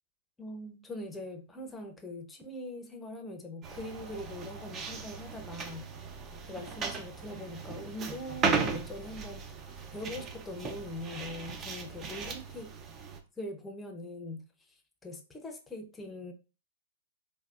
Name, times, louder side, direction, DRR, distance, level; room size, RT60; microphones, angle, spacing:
voice 1, 0.4-5.9 6.5-9.5 9.9-12.7 13.4-14.7 15.0-16.3, left 1 dB, 15° left, 0.6 m, -42 dB
sound 1, 3.6-13.2, right 5 dB, 30° right, 0.5 m, -37 dB
3.3 x 2.1 x 2.4 m
hypercardioid pair, 120°, 0 cm